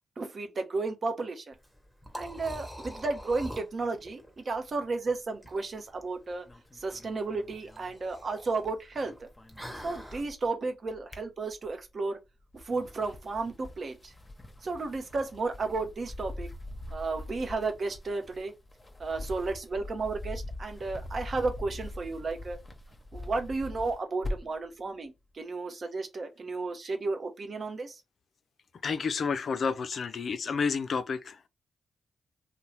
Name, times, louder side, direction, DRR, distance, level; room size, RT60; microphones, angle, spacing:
voice 1, 0.2-1.5 2.1-6.5 6.7-9.3 9.8-12.2 12.5-14.1 14.6-16.5 16.9-18.5 19.0-22.6 23.1-28.0, right 3 dB, 55° right, 0.7 m, -33 dB
Liquid, 1.5-10.2, equal, 5° right, 1.1 m, -46 dB
sound 1, 6.5-8.6 8.9-10.5 10.9-11.9 12.4-24.7, left 1 dB, 25° left, 0.8 m, -43 dB
voice 2, 28.8-31.5, left 5 dB, 65° left, 0.3 m, -30 dB
2.7 x 2.1 x 3.1 m
supercardioid pair, 40°, 0 cm